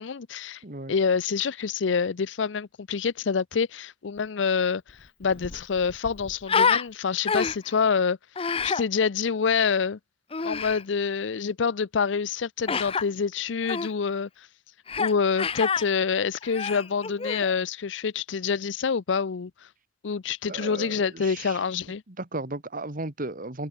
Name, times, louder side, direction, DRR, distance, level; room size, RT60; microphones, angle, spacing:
voice 1, 0.0-0.6 0.9-4.8 5.2-8.2 8.6-10.0 10.4-14.3 15.0-19.5 20.0-22.0, left 5 dB, 75° left, 0.5 m, -26 dB
voice 2, 0.6-0.9 20.5-21.6 22.1-23.7, right 2 dB, 45° right, 2.2 m, -35 dB
Human voice, 4.9-5.0 5.2-6.9 7.3-7.8 8.4-8.8 10.3-10.8 12.7-13.0 13.7-13.9 14.9-15.1 15.4-15.8 16.4-17.5, left 5 dB, 30° left, 0.7 m, -27 dB
head